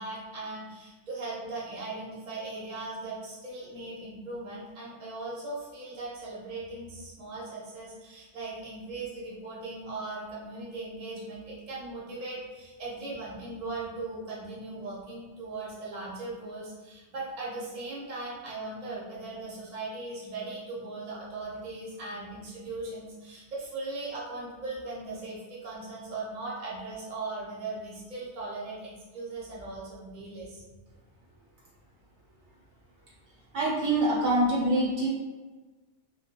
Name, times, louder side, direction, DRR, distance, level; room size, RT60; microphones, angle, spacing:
voice 1, 0.0-30.6, right 2 dB, 45° right, -6 dB, 0.8 m, -39 dB
voice 2, 33.5-35.1, right 1 dB, 70° right, -5 dB, 0.9 m, -25 dB
2.3 x 2.2 x 2.8 m, 1.3 s
omnidirectional pair, 1.2 m